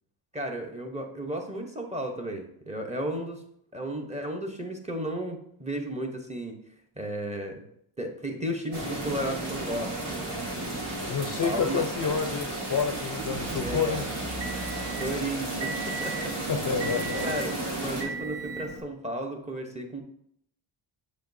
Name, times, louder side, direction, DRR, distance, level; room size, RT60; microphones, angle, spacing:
voice 1, 0.3-3.4 3.7-6.6 7.0-7.6 8.0-10.4 11.0-11.8 13.6-14.0 15.0-16.4 16.6-20.0, right 1 dB, 15° right, 3 dB, 0.8 m, -34 dB
sound 1, 8.7-18.0, right 1 dB, 85° right, 2.0 m, -34 dB
voice 2, 11.0-14.3 16.5-17.2, left 6 dB, 45° left, 5 dB, 0.4 m, -29 dB
Motor vehicle (road) / Engine, 12.7-18.8, right 3 dB, 60° right, 1.4 m, -37 dB
7.4 x 5.1 x 2.6 m, 0.70 s
wide cardioid pair, 135°, 50 cm